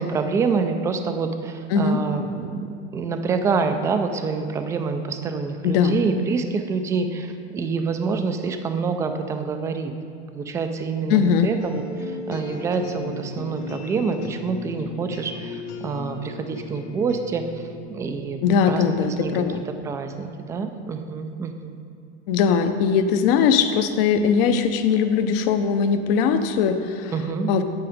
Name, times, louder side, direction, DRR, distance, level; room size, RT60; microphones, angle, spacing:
voice 1, 0.0-9.9 10.3-21.8 27.1-27.5, right 5 dB, 10° right, 7 dB, 0.3 m, -27 dB
voice 2, 5.6-5.9 11.1-11.5 18.4-19.6 22.3-27.1 27.5-27.6, left 6 dB, 55° left, 9 dB, 0.8 m, -20 dB
sound 1, 11.6-19.2, left 3 dB, 70° left, 1.4 m, -37 dB
8.5 x 8.4 x 5.0 m, 2.4 s
supercardioid pair, 130°, 34 cm